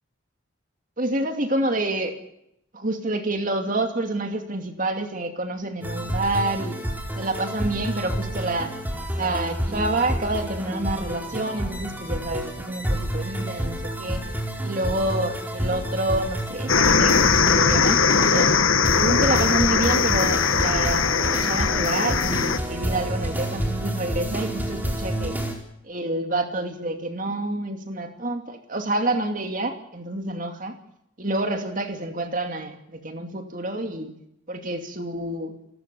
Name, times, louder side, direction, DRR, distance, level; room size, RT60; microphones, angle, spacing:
voice 1, 1.0-2.2 2.7-6.8 7.2-8.7 9.1-14.2 14.6-18.5 19.0-25.4 25.8-30.7 31.2-34.1 34.5-35.5, right 2 dB, 40° right, 6 dB, 2.6 m, -28 dB
sound 1, 5.8-25.5, right 1 dB, 10° right, 4.5 m, -29 dB
sound 2, 16.7-22.6, left 5 dB, 80° left, 1.7 m, -20 dB
30.0 x 15.5 x 7.0 m, 0.79 s
head